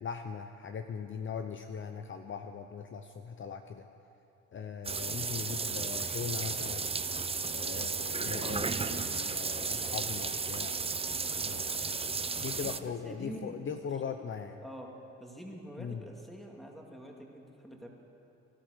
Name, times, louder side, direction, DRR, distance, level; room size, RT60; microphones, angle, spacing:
voice 1, 0.0-3.9 4.5-6.9 7.5-11.2 11.4-14.6 15.8-16.0, left 6 dB, 40° left, 7 dB, 0.7 m, -40 dB
sound 1, 4.8-12.8, right 4 dB, 20° right, 0.5 m, -34 dB
voice 2, 12.6-13.6 14.0-14.2 14.6-14.9 15.2-17.9, equal, ahead, 0 dB, 2.5 m, -46 dB
18.5 x 12.0 x 6.4 m, 2.8 s
cardioid pair, 90°, 30 cm